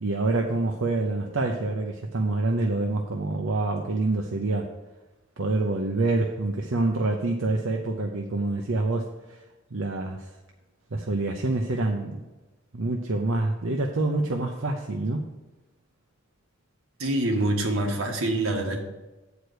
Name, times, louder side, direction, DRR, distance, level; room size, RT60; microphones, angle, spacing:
voice 1, 0.0-4.7 5.4-9.4 9.7-10.3 10.9-12.3 12.7-15.3, right 2 dB, 70° right, 2 dB, 0.7 m, -26 dB
voice 2, 17.0-18.8, right 1 dB, 85° right, 2 dB, 1.5 m, -25 dB
8.0 x 4.9 x 6.3 m, 1.1 s
head